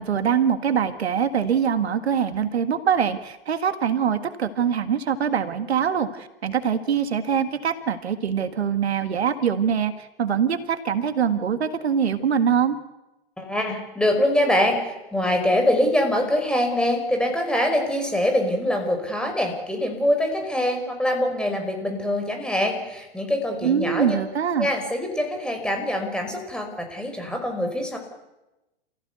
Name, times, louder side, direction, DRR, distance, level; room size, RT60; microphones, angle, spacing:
voice 1, 0.0-9.9 10.2-12.8 23.6-24.7, right 7 dB, 80° right, 10 dB, 1.8 m, -23 dB
voice 2, 13.4-24.2 24.6-28.0, left 1 dB, 5° left, 3 dB, 5.4 m, -24 dB
28.5 x 15.5 x 8.3 m, 1.0 s
hypercardioid pair, 105°, 32 cm